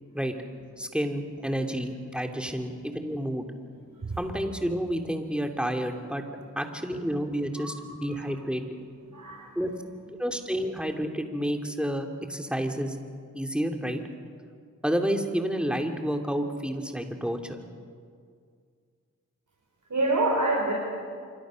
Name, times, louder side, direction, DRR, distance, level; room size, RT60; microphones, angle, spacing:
voice 1, 0.8-3.5 4.2-6.2 6.6-8.8 9.5-9.7 10.2-13.0 13.3-14.0 14.8-17.6, equal, 5° right, 4 dB, 2.9 m, -30 dB
voice 2, 9.1-9.6 19.9-20.7, right 2 dB, 70° right, -3 dB, 4.9 m, -27 dB
26.5 x 24.5 x 6.5 m, 2.1 s
cardioid pair, 45°, 32 cm